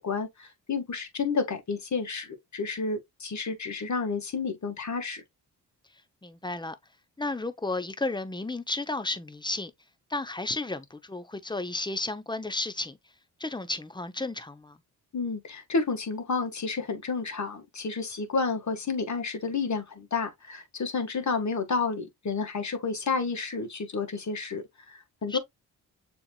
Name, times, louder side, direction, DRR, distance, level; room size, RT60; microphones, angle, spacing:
voice 1, 0.0-5.2 15.1-25.4, left 4 dB, 45° left, 1.7 m, -31 dB
voice 2, 6.2-6.8 7.2-9.7 10.1-13.0 13.4-14.8 25.3-25.4, left 2 dB, 10° left, 0.8 m, -33 dB
6.9 x 3.0 x 2.4 m
supercardioid pair, 45°, 41 cm